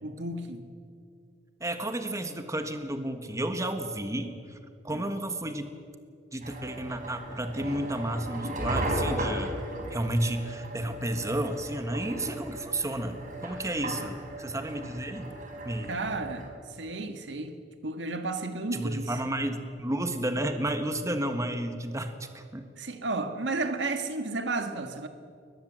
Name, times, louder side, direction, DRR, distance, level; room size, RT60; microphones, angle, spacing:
voice 1, 0.0-0.7 4.9-5.1 13.7-14.0 15.9-16.5 16.8-19.1 22.8-25.1, right 3 dB, 75° right, 7 dB, 1.7 m, -33 dB
voice 2, 1.6-4.6 4.8-5.7 6.3-9.6 9.9-15.3 15.6-16.0 18.7-22.7, right 1 dB, 15° right, 7 dB, 1.4 m, -32 dB
sound 1, 6.4-16.5, right 1 dB, 45° right, 4.3 m, -36 dB
22.0 x 20.0 x 7.6 m, 2.4 s
head